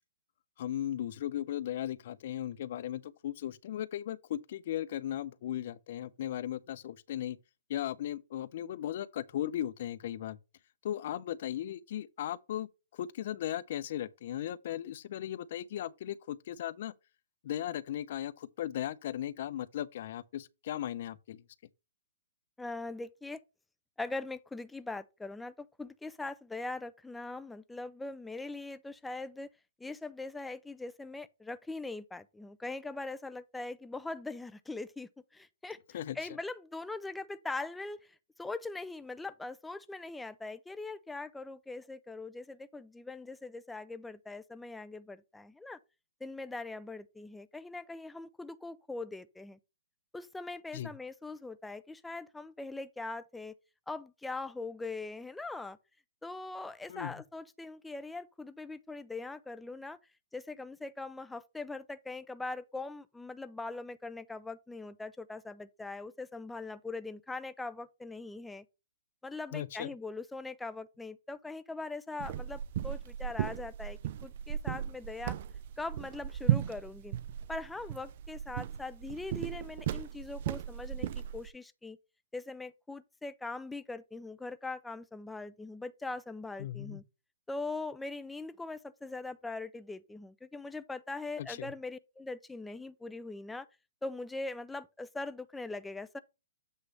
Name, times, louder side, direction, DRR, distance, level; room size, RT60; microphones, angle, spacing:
voice 1, 0.6-7.4 7.7-10.4 10.8-16.9 17.4-21.4 35.9-36.2 50.7-50.9 56.9-57.2 69.5-69.9 86.6-87.0 91.4-91.7, left 11 dB, 55° left, 0.6 m, -37 dB
voice 2, 22.6-23.4 24.0-29.5 29.8-38.0 38.4-45.8 46.2-49.6 50.1-53.5 53.9-55.8 56.2-60.0 60.3-68.6 69.2-75.4 75.8-77.2 77.5-82.0 82.3-87.0 87.5-93.7 94.0-96.2, left 3 dB, 5° left, 0.5 m, -41 dB
sound 1, 72.2-81.5, right 11 dB, 50° right, 0.5 m, -36 dB
8.2 x 3.2 x 5.5 m
hypercardioid pair, 135°, 0 cm